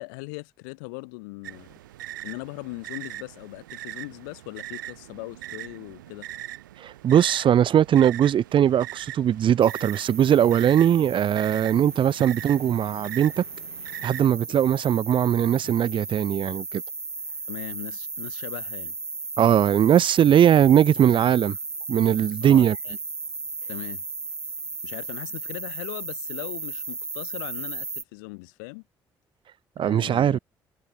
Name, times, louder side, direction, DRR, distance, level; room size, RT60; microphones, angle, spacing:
voice 1, 0.0-1.7 2.2-6.3 11.5-11.6 17.5-18.9 22.4-23.0 23.7-24.0 24.8-28.8 29.8-30.4, left 30 dB, 80° left, 1.1 m, -39 dB
sound 1, 1.4-14.3, right 14 dB, 90° right, 3.7 m, -40 dB
voice 2, 6.8-13.4 14.0-16.8 19.4-21.6 21.9-22.8 29.8-30.4, right 10 dB, 55° right, 0.8 m, -20 dB
sound 2, 9.6-28.0, right 3 dB, 25° right, 1.2 m, -35 dB
hypercardioid pair, 50°, 10 cm